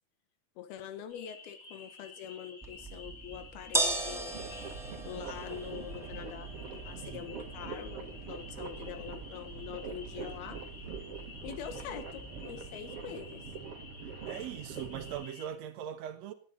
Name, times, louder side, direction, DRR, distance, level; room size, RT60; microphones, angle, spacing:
voice 1, 0.6-4.4 5.0-10.7 11.4-13.5, left 9 dB, 85° left, 3.2 m, -44 dB
sound 1, 1.1-15.5, left 4 dB, 45° left, 7.3 m, -51 dB
sound 2, 2.6-12.7, right 2 dB, ahead, 1.6 m, -39 dB
sound 3, 4.3-15.3, right 5 dB, 50° right, 2.1 m, -44 dB
voice 2, 14.2-16.3, right 10 dB, 65° right, 1.8 m, -40 dB
17.5 x 9.9 x 5.3 m
omnidirectional pair, 4.3 m